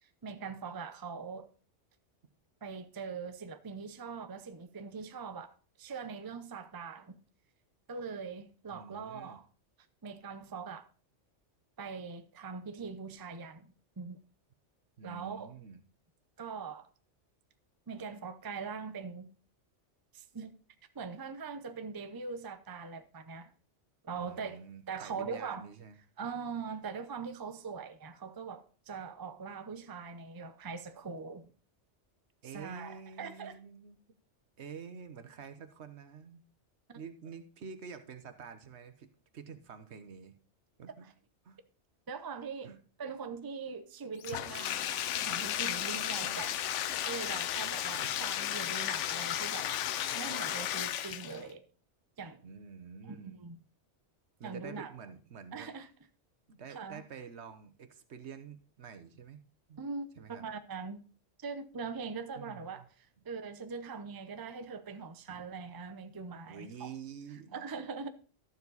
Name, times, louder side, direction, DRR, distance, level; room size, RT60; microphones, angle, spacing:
voice 1, 0.2-1.5 2.6-7.2 7.9-9.5 10.0-10.9 11.8-14.2 15.0-15.5 16.4-16.9 17.9-19.3 20.1-20.5 20.9-23.5 24.0-24.6 24.9-25.7 26.2-31.5 32.5-33.6 36.9-37.0 42.1-42.7 43.0-49.7 50.1-51.6 52.2-52.4 53.0-53.6 54.4-54.9 55.5-55.9 56.7-57.0 59.8-61.1 61.4-66.9 67.5-68.1, right 5 dB, 25° right, 0.6 m, -42 dB
voice 2, 8.7-9.4 15.0-15.8 24.1-26.0 32.4-34.0 34.6-36.4 36.9-40.3 40.8-41.1 41.4-41.6 42.6-42.8 46.1-46.6 48.0-48.1 51.3-51.4 52.4-53.4 54.4-55.7 56.5-59.4 59.7-59.8 60.2-60.5 62.4-62.9 65.3-65.4 66.5-67.6, right 6 dB, 70° right, 1.2 m, -48 dB
Bathtub (filling or washing), 44.2-51.5, left 11 dB, 85° left, 1.0 m, -34 dB
12.0 x 7.2 x 4.0 m
omnidirectional pair, 1.2 m